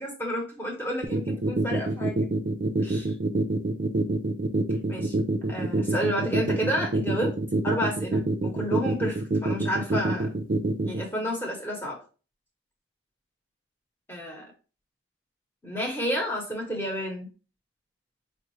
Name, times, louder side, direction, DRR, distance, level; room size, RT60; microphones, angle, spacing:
voice 1, 0.0-2.3 2.8-3.1 4.9-5.1 5.5-7.3 7.6-10.3 10.8-12.0 14.1-14.5 15.6-17.3, equal, 10° left, -1 dB, 0.9 m, -30 dB
sound 1, 1.0-11.0, right 2 dB, 45° right, 0.4 m, -25 dB
4.4 x 2.4 x 3.1 m, 0.35 s
head